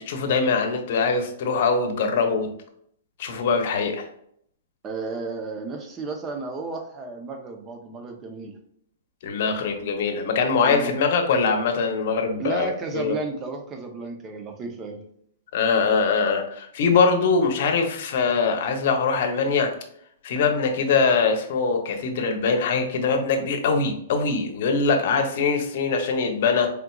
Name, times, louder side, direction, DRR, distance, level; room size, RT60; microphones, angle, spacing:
voice 1, 0.1-2.5 3.2-4.1 9.2-13.1 15.5-19.7 20.2-26.7, left 4 dB, 55° left, 4 dB, 0.9 m, -22 dB
voice 2, 4.8-8.5 10.6-10.9 12.4-15.0, right 3 dB, 20° right, 3 dB, 0.7 m, -33 dB
4.3 x 3.7 x 2.3 m, 0.69 s
hypercardioid pair, 155°, 0 cm